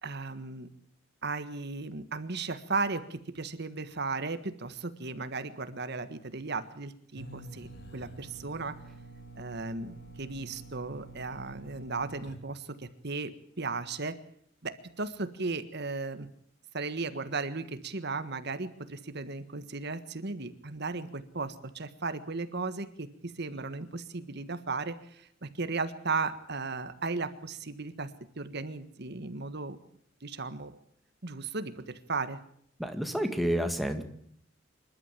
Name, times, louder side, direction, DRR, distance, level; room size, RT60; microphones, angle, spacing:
voice 1, 0.0-0.7 1.2-8.7 9.3-14.2 14.6-16.3 16.7-28.1 28.4-29.8 30.2-30.8 31.2-32.4, right 3 dB, 60° right, 11 dB, 1.6 m, -36 dB
sound 1, 7.2-12.4, right 2 dB, 55° left, 2.7 m, -48 dB
voice 2, 32.8-34.0, equal, ahead, 5 dB, 1.9 m, -29 dB
26.5 x 12.5 x 9.1 m, 0.65 s
head